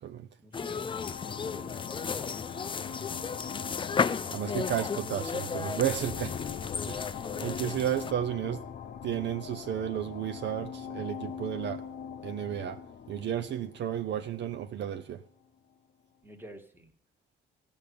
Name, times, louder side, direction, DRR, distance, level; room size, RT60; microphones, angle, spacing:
voice 1, 0.4-2.3 6.4-6.6 16.2-16.9, right 1 dB, 10° right, 1.6 m, -51 dB
sound 1, 0.5-8.1, left 5 dB, 25° left, 0.4 m, -34 dB
sound 2, 0.9-15.0, left 7 dB, 55° left, 0.8 m, -41 dB
voice 2, 4.3-6.5 6.8-8.6 9.0-11.8 12.2-12.8 13.1-15.2, right 10 dB, 60° right, 0.6 m, -33 dB
14.5 x 5.2 x 8.4 m
cardioid pair, 90°, 20 cm